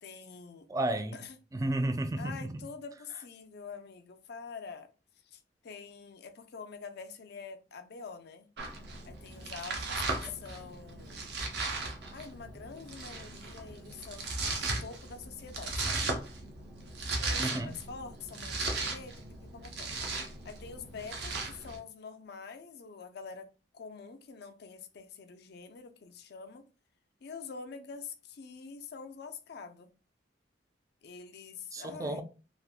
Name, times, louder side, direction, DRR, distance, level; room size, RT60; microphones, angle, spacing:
voice 1, 0.0-0.7 1.1-1.4 2.2-4.9 5.2-8.5 9.0-11.3 12.1-16.1 17.2-19.9 20.4-23.5 23.7-26.6 27.2-29.9 31.0-32.2, left 5 dB, 65° left, 0.4 m, -46 dB
voice 2, 0.7-1.2 1.5-2.5 17.4-17.7 31.7-32.2, right 1 dB, 20° right, 0.3 m, -32 dB
Domestic sounds home sounds, 8.6-21.8, right 3 dB, 65° right, 0.7 m, -37 dB
3.3 x 2.1 x 2.3 m
head